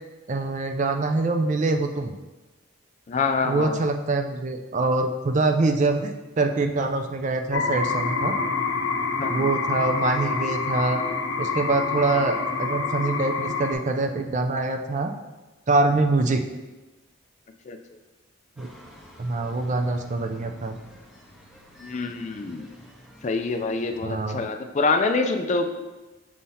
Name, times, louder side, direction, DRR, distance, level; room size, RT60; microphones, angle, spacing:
voice 1, 0.3-2.1 3.4-8.3 9.3-11.0 11.4-15.1 15.7-16.4 18.6-18.7 19.2-20.8 24.0-24.4, right 3 dB, 35° right, 6 dB, 0.4 m, -24 dB
voice 2, 3.1-3.8 9.2-9.5 17.7-17.8 21.8-22.7 23.2-25.7, left 4 dB, 35° left, 5 dB, 0.3 m, -26 dB
sound 1, 7.5-13.7, left 4 dB, 80° left, 0.6 m, -27 dB
sound 2, 18.6-24.0, equal, 5° right, 0.8 m, -49 dB
6.3 x 2.8 x 5.6 m, 1.1 s
head